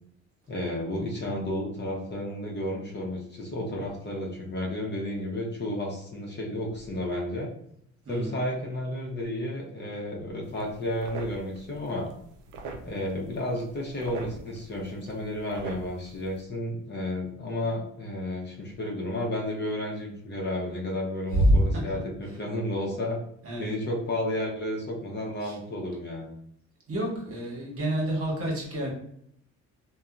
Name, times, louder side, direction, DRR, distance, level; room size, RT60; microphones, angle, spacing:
voice 1, 0.5-7.5 8.1-12.1 12.8-23.2 23.6-26.3, left 1 dB, 35° left, -2 dB, 0.7 m, -32 dB
voice 2, 8.1-8.4 21.3-21.8 23.4-23.7 25.4-25.5 26.9-28.9, right 1 dB, 50° right, -2 dB, 1.0 m, -26 dB
sound 1, 10.4-16.4, right 3 dB, 85° right, 0.5 m, -44 dB
2.7 x 2.2 x 2.4 m, 0.70 s
cardioid pair, 90°, 30 cm